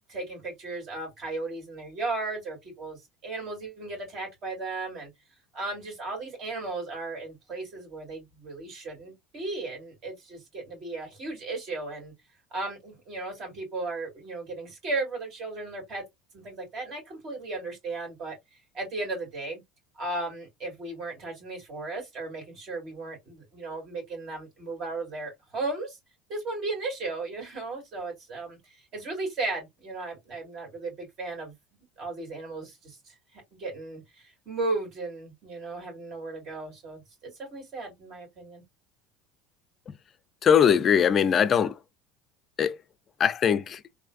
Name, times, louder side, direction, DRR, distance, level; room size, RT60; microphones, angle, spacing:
voice 1, 0.1-5.1 5.5-12.1 12.5-16.0 16.3-18.4 18.7-19.6 19.9-26.0 26.3-28.6 28.9-31.5 32.0-33.1 33.5-34.0 34.5-38.6, right 3 dB, 45° right, 2.6 m, -35 dB
voice 2, 40.4-41.8 42.6-42.8 43.2-43.8, left 8 dB, 30° left, 0.4 m, -21 dB
3.7 x 2.7 x 2.4 m
supercardioid pair, 130°, 0 cm